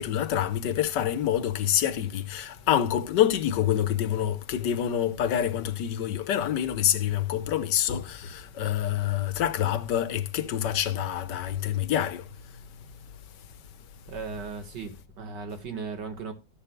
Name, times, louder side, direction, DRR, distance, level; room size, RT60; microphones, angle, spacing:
voice 1, 0.0-12.2, left 10 dB, 80° left, 1.5 m, -26 dB
voice 2, 14.1-16.3, right 5 dB, 80° right, 2.2 m, -37 dB
13.5 x 10.5 x 2.2 m
omnidirectional pair, 1.9 m